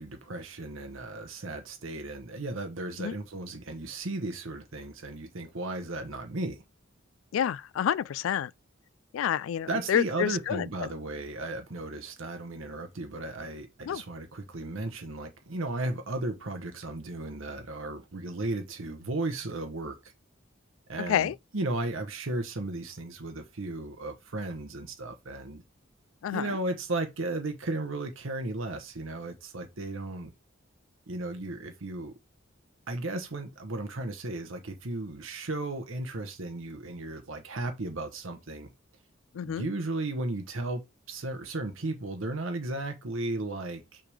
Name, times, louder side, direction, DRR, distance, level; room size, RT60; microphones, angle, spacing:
voice 1, 0.0-6.6 9.7-20.1 20.9-25.6 26.3-30.3 31.1-32.1 32.9-38.7 39.4-44.0, right 2 dB, 80° right, 1.1 m, -35 dB
voice 2, 7.3-8.5 9.1-10.7 13.9-14.0 21.1-21.3 26.2-26.5 39.3-39.7, left 9 dB, 80° left, 0.3 m, -28 dB
5.6 x 3.6 x 4.9 m
head